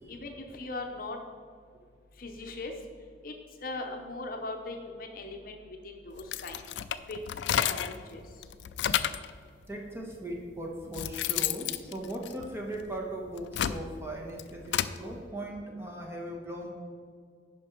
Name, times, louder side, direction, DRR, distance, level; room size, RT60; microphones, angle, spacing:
voice 1, 0.1-1.2 2.2-2.7 3.2-3.3 3.6-5.5 5.8-6.6 7.1-7.2 7.6-8.2, left 2 dB, 50° left, 3 dB, 0.7 m, -39 dB
sound 1, 6.2-8.0 8.4-9.3 10.1-10.2 10.7-12.8 13.3-15.0, left 10 dB, 75° left, 0.3 m, -31 dB
voice 2, 9.7-16.7, right 1 dB, 15° right, -1 dB, 1.1 m, -38 dB
10.5 x 5.2 x 4.5 m, 2.1 s
head